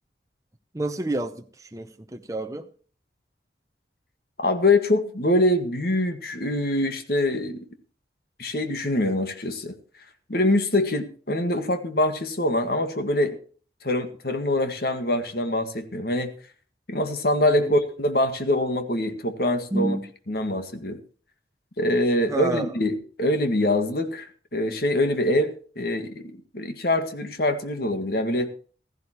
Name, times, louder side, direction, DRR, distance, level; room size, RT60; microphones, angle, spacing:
voice 1, 0.7-2.7 17.6-17.7 19.7-20.1 22.3-22.7, right 1 dB, 20° right, 0.7 m, -29 dB
voice 2, 4.4-7.6 8.4-9.7 10.3-13.4 13.8-16.3 16.9-20.0 20.3-21.0 21.8-28.5, left 1 dB, 55° left, 1.8 m, -24 dB
15.5 x 14.5 x 3.0 m
head